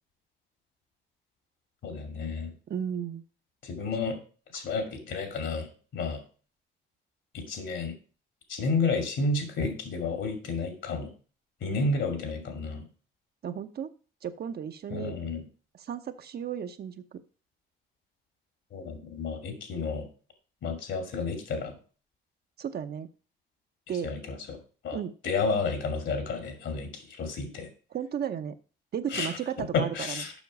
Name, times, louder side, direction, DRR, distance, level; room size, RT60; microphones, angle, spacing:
voice 1, 1.8-2.5 3.6-4.2 4.5-5.7 5.9-6.2 7.3-7.9 8.5-11.1 11.6-12.8 14.9-15.4 18.7-20.1 20.6-21.7 24.0-24.6 24.8-25.0 25.2-27.7 29.1-29.3 29.7-30.3, left 4 dB, 70° left, 6 dB, 2.5 m, -31 dB
voice 2, 2.7-3.2 13.4-13.9 14.2-15.2 15.7-17.2 22.6-23.1 23.9-24.1 24.9-25.1 27.9-28.6 28.9-30.2, right 8 dB, 55° right, 9 dB, 0.8 m, -34 dB
7.2 x 5.9 x 5.3 m, 0.37 s
cardioid pair, 90°, 20 cm